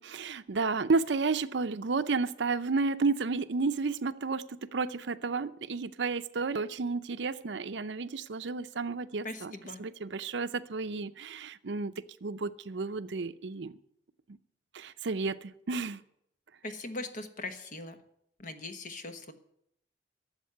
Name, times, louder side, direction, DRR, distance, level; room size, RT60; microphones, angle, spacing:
voice 1, 0.0-9.5 9.8-11.9 12.2-13.7 14.3-14.4 14.7-16.0, right 4 dB, 70° right, 13 dB, 0.6 m, -32 dB
voice 2, 9.2-9.8 16.6-18.0 18.4-19.3, left 2 dB, 45° left, 8 dB, 1.3 m, -40 dB
12.5 x 7.4 x 9.4 m, 0.75 s
head